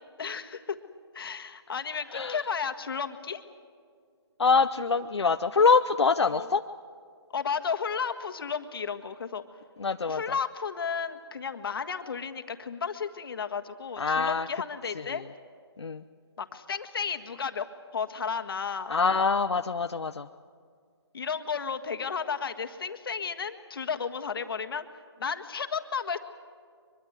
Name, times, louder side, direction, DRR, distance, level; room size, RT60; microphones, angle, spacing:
voice 1, 0.2-0.6 1.1-3.4 6.3-6.5 7.3-9.4 10.1-15.2 16.4-17.7 17.9-18.9 21.1-24.8 25.2-26.2, left 6 dB, 60° left, 8 dB, 1.6 m, -33 dB
voice 2, 4.4-6.6 9.8-10.2 14.0-14.5 15.0-15.2 15.8-16.0 18.9-20.3, left 5 dB, 90° left, 8 dB, 0.7 m, -24 dB
23.0 x 22.5 x 8.1 m, 2.1 s
hypercardioid pair, 155°, 14 cm